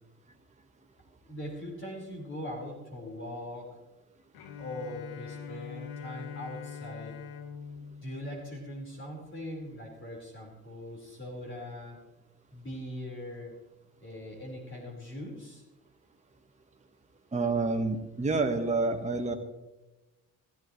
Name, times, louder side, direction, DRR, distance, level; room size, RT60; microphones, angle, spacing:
voice 1, 1.3-3.8 4.6-7.2 8.0-12.0 12.5-13.5 14.0-15.6, left 1 dB, 35° left, -2 dB, 4.8 m, -41 dB
Bowed string instrument, 4.3-9.3, left 6 dB, 80° left, 1.3 m, -43 dB
voice 2, 17.3-19.3, right 3 dB, 20° right, 3 dB, 1.6 m, -28 dB
16.0 x 14.0 x 3.2 m, 1.1 s
cardioid pair, 85°, 36 cm